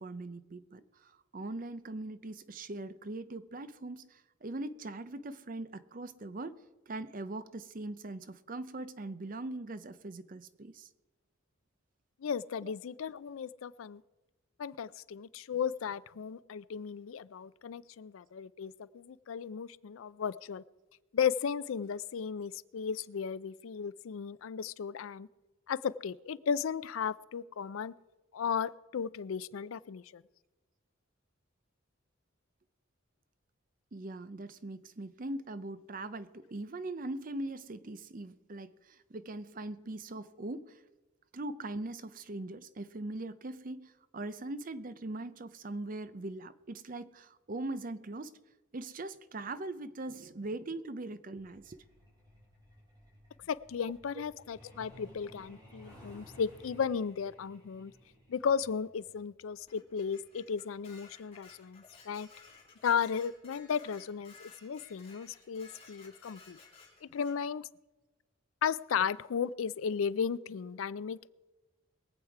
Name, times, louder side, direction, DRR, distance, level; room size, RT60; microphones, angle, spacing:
voice 1, 0.0-6.6 6.9-10.9 12.6-12.7 33.9-40.8 41.3-48.3 48.7-51.8, right 2 dB, 45° right, 13 dB, 0.6 m, -41 dB
voice 2, 12.2-14.0 14.6-20.6 21.1-25.3 25.7-27.9 28.3-30.2 53.4-57.9 58.3-62.3 62.8-66.6 67.0-67.7 68.6-71.4, left 7 dB, 85° left, 18 dB, 0.4 m, -35 dB
Truck, 51.4-63.7 64.9-65.1 65.4-65.6 66.0-66.3 66.6-66.7 67.2-67.3, equal, 20° right, 4.1 m, -58 dB
Dishes pots and pans, 59.7-67.4, left 4 dB, 30° left, 3.8 m, -57 dB
22.0 x 8.0 x 4.8 m, 1.1 s
head